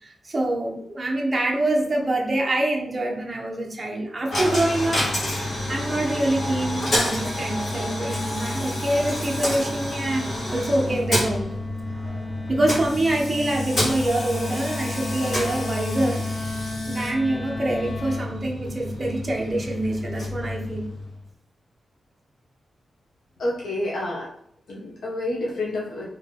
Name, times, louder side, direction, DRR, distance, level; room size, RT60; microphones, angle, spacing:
voice 1, 0.0-11.5 12.5-16.3 16.9-20.9, right 1 dB, 25° right, 0 dB, 0.7 m, -25 dB
Coin (dropping), 4.3-21.2, left 1 dB, 45° left, 1.5 m, -29 dB
Wind instrument woodwind instrument, 6.9-18.4, left 2 dB, 25° left, 0.6 m, -36 dB
voice 2, 23.4-24.3 24.7-26.1, left 1 dB, 75° left, -4 dB, 0.7 m, -28 dB
3.7 x 2.9 x 3.6 m, 0.67 s
wide cardioid pair, 165°, 0 cm